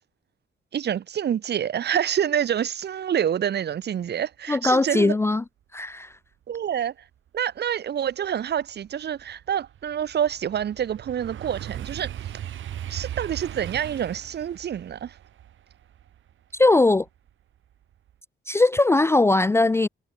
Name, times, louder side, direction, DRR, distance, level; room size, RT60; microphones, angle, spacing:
voice 1, 0.7-5.2 6.5-6.9 7.3-12.4 12.9-15.2, right 9 dB, 55° right, 2.8 m, -27 dB
voice 2, 4.5-5.4 5.7-6.1 16.5-17.1 18.5-19.9, left 2 dB, 15° left, 0.5 m, -20 dB
sound 1, 7.7-7.8 8.2-17.3 17.7-18.1, right 11 dB, 75° right, 4.2 m, -38 dB
wide cardioid pair, 170°, 20 cm